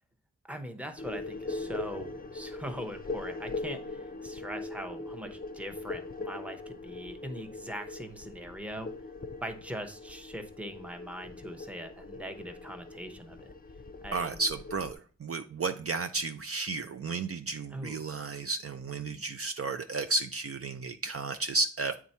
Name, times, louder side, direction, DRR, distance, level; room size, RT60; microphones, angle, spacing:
voice 1, 0.5-8.9 9.4-13.5 14.0-14.4 17.7-18.0, equal, 5° right, 6 dB, 0.8 m, -41 dB
sound 1, 1.0-14.9, left 3 dB, 30° left, 0.5 m, -41 dB
voice 2, 14.1-22.0, right 3 dB, 50° right, 7 dB, 0.4 m, -33 dB
8.5 x 3.5 x 4.3 m, 0.41 s
wide cardioid pair, 90°, 31 cm